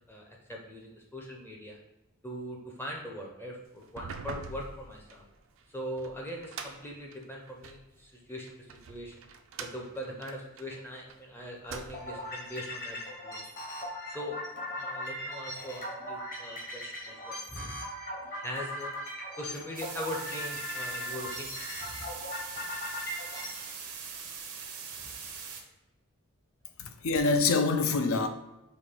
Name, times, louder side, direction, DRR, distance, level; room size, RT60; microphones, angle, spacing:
voice 1, 0.1-1.8 2.2-5.2 5.7-9.2 9.6-13.5 14.1-14.4 14.7-17.8 18.3-18.9 19.4-22.1 25.0-25.1, equal, 10° left, 0.5 m, -41 dB
sound 1, 3.8-7.9 8.5-11.2 11.5-12.3, right 5 dB, 60° right, 0.4 m, -44 dB
sound 2, 11.9-23.7, left 1 dB, 40° left, 1.1 m, -39 dB
sound 3, 19.8-25.6, right 6 dB, 85° right, 0.7 m, -42 dB
voice 2, 26.8-28.3, left 3 dB, 70° left, 0.5 m, -26 dB
4.2 x 3.0 x 3.5 m
head